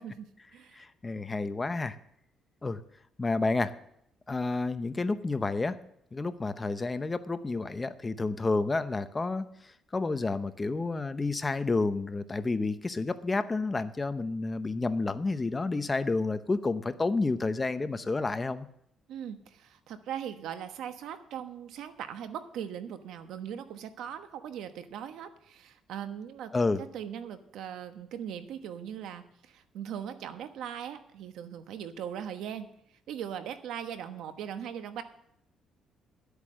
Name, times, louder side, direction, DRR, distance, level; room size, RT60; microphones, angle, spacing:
voice 1, 0.0-0.8 19.1-26.5 26.8-32.7 33.1-35.0, right 9 dB, 80° right, 9 dB, 1.1 m, -40 dB
voice 2, 0.7-2.0 2.6-2.8 3.2-3.7 4.3-5.8 6.1-18.7 26.5-26.8, left 3 dB, 20° left, 11 dB, 0.7 m, -30 dB
12.0 x 8.3 x 6.3 m, 0.71 s
cardioid pair, 110°, 0 cm